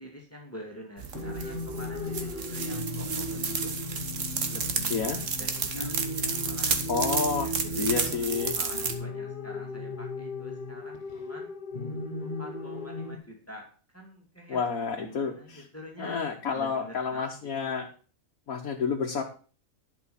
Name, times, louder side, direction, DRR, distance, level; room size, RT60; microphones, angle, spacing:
voice 1, 0.0-3.7 4.5-11.5 12.2-13.6 13.9-14.7 15.0-16.2 16.5-17.6, equal, 10° left, 0 dB, 2.5 m, -47 dB
sound 1, 1.0-8.9, right 5 dB, 65° right, 1.7 m, -32 dB
sound 2, 1.1-13.1, left 2 dB, 40° left, 1.3 m, -36 dB
voice 2, 4.9-5.2 6.9-7.5 7.8-8.5 14.5-15.6 16.0-17.9 18.5-19.2, left 5 dB, 90° left, 0 dB, 1.7 m, -29 dB
11.5 x 5.5 x 7.1 m, 0.39 s
omnidirectional pair, 1.4 m